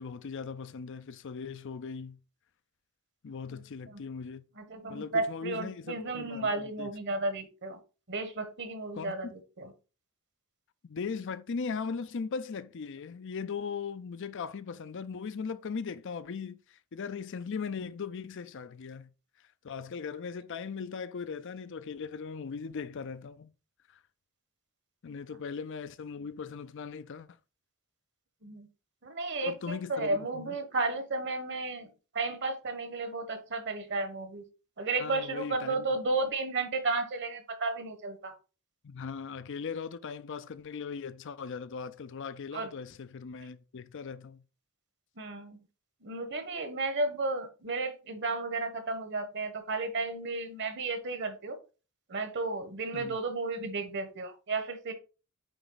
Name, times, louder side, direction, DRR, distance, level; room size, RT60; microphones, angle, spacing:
voice 1, 0.0-2.2 3.2-4.4 4.9-6.9 8.9-9.3 10.8-19.1 19.6-23.5 23.9-24.0 25.0-27.3 29.4-30.6 35.0-35.9 38.8-44.4 52.9-53.2, left 5 dB, 55° left, 0.5 m, -39 dB
voice 2, 4.6-7.8 8.1-9.7 25.1-25.2 28.4-28.7 29.0-34.4 34.8-38.3 42.5-42.7 45.2-45.6 46.0-51.6 52.1-54.9, right 3 dB, 55° right, 1.3 m, -33 dB
9.2 x 3.4 x 3.9 m
head